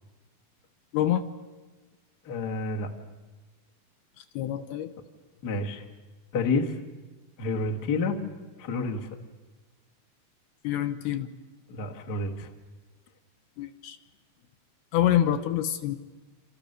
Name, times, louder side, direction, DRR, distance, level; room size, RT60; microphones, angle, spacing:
voice 1, 0.9-1.2 4.3-4.9 10.6-11.3 13.6-14.0 14.9-16.0, left 11 dB, 75° left, 9 dB, 2.8 m, -26 dB
voice 2, 2.2-2.9 5.4-5.8 6.3-6.8 7.4-8.2 8.6-9.1 11.7-12.5, left 3 dB, 55° left, 2 dB, 1.1 m, -29 dB
28.5 x 27.0 x 6.7 m, 1.3 s
omnidirectional pair, 5.0 m